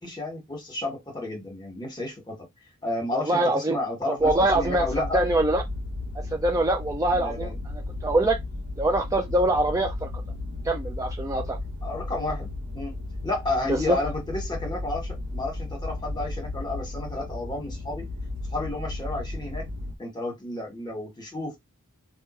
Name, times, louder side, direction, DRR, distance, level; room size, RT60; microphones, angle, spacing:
voice 1, 0.0-2.4 2.8-5.2 7.1-7.6 11.8-12.5 12.7-12.9 13.2-18.0 18.5-19.7 20.0-21.6, left 2 dB, 20° left, 1.4 m, -31 dB
voice 2, 3.1-3.8 4.2-4.9 5.1-5.6 6.2-8.4 8.8-10.1 10.6-11.6 13.7-14.0, right 1 dB, 15° right, 0.4 m, -24 dB
sound 1, 4.2-19.9, left 2 dB, 55° right, 0.9 m, -34 dB
3.6 x 2.2 x 4.2 m
head